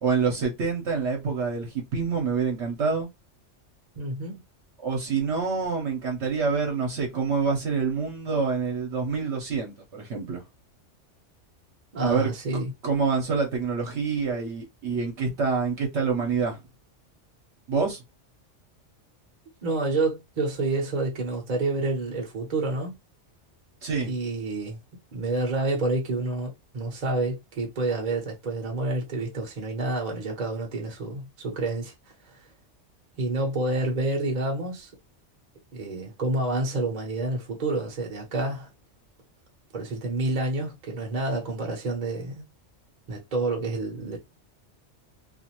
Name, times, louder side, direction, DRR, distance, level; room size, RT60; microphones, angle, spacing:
voice 1, 0.0-3.1 4.8-10.4 12.0-12.3 12.8-16.6 17.7-18.0 23.8-24.1, right 5 dB, 70° right, 1.1 m, -26 dB
voice 2, 3.9-4.4 11.9-12.7 19.6-23.0 24.1-24.8 25.1-31.9 33.2-34.9 35.7-38.7 39.7-42.4 43.1-44.2, right 2 dB, 40° right, 0.8 m, -28 dB
2.5 x 2.4 x 2.8 m
omnidirectional pair, 1.2 m